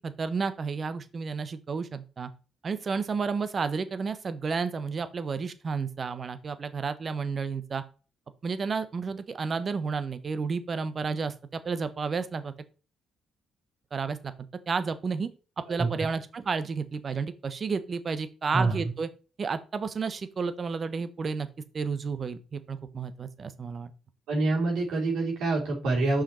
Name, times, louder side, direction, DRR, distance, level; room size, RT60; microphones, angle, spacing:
voice 1, 0.0-2.3 2.6-7.8 8.4-12.5 13.9-14.2 14.7-15.3 15.7-19.1 19.4-21.5 21.7-23.9, right 5 dB, 40° right, 12 dB, 0.9 m, -31 dB
voice 2, 18.5-18.9 24.3-26.2, right 3 dB, 80° right, -2 dB, 2.6 m, -26 dB
5.8 x 5.0 x 4.3 m, 0.34 s
cardioid pair, 90°, 0 cm